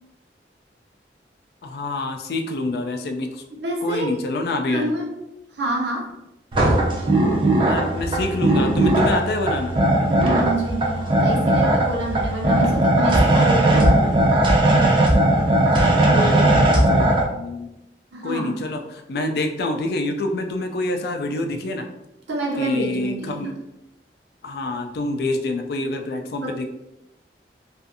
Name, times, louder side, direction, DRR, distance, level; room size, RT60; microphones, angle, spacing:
voice 1, 1.6-3.4 3.8-4.9 7.7-9.7 15.7-17.7 18.2-21.9 22.6-23.6 24.4-26.7, left 2 dB, 65° left, 6 dB, 0.3 m, -27 dB
voice 2, 3.5-4.2 4.7-5.2 5.5-6.1 6.5-6.8 10.1-14.1 18.1-18.6 22.3-23.5 26.4-26.7, right 2 dB, 85° right, -1 dB, 0.6 m, -28 dB
sound 1, 6.5-17.2, right 1 dB, 30° right, 0.4 m, -18 dB
2.5 x 2.4 x 2.6 m, 0.89 s
head